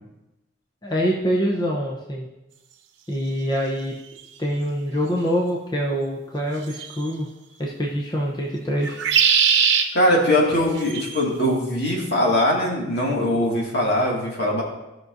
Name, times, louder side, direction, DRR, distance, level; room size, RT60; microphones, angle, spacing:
voice 1, 0.8-2.3 3.1-3.9 4.4-7.3 7.6-9.0, equal, 20° left, -2 dB, 0.8 m, -25 dB
sound 1, 4.2-4.3 6.7-7.1 8.8-9.9 10.8-11.2, right 7 dB, 75° right, 0.9 m, -20 dB
voice 2, 9.9-14.6, left 1 dB, 60° left, -3 dB, 2.2 m, -21 dB
16.0 x 6.1 x 2.7 m, 0.97 s
head